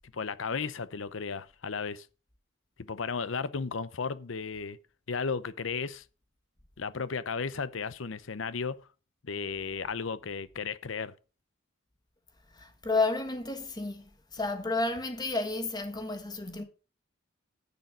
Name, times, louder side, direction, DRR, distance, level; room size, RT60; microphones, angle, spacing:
voice 1, 0.1-2.1 2.8-4.8 5.1-6.0 6.8-8.8 9.2-11.1, left 5 dB, 80° left, 0.7 m, -34 dB
voice 2, 12.5-14.1 14.3-16.6, left 3 dB, 20° left, 1.5 m, -31 dB
10.0 x 6.9 x 5.1 m
head